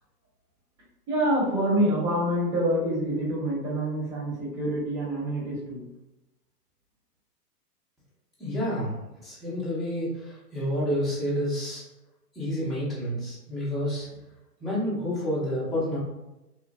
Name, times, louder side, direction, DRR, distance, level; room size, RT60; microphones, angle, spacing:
voice 1, 1.1-5.9, right 1 dB, 45° right, -7 dB, 1.5 m, -26 dB
voice 2, 8.4-9.0 9.2-11.8 12.3-14.1 14.6-16.0, equal, ahead, -11 dB, 0.5 m, -29 dB
3.0 x 2.2 x 2.5 m, 0.94 s
hypercardioid pair, 130°, 48 cm